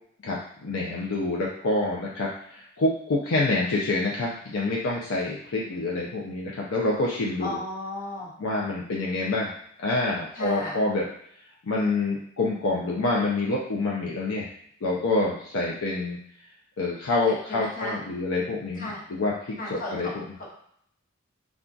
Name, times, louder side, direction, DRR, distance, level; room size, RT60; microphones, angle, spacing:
voice 1, 0.2-7.6 8.4-9.5 9.8-11.1 11.6-14.5 14.8-16.2 16.8-20.2, left 2 dB, 70° left, -4 dB, 0.5 m, -27 dB
voice 2, 7.4-8.3 10.3-10.7 17.3-18.0 18.7-19.0 19.6-20.1, left 1 dB, 40° left, -5 dB, 1.0 m, -34 dB
3.8 x 2.4 x 2.3 m, 0.66 s
head